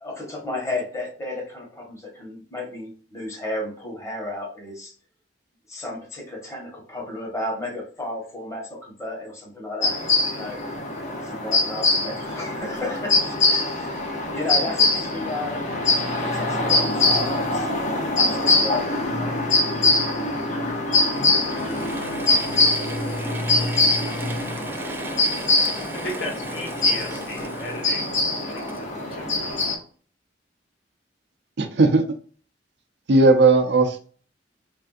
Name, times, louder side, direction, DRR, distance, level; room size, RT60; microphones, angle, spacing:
voice 1, 0.0-4.9 5.7-10.0 10.3-10.6 11.2-14.0 14.3-15.6 16.1-17.7 18.0-19.3, left 2 dB, 15° left, -1 dB, 1.1 m, -33 dB
sound 1, 9.8-29.8, left 2 dB, 40° left, 0.7 m, -23 dB
Mechanisms / Drill, 21.1-29.7, right 3 dB, 10° right, 0.3 m, -37 dB
voice 2, 25.9-29.6, left 1 dB, 70° left, 0 dB, 1.1 m, -36 dB
voice 3, 31.6-32.0 33.1-34.1, right 3 dB, 65° right, 6 dB, 0.5 m, -17 dB
3.3 x 2.5 x 2.4 m, 0.42 s
head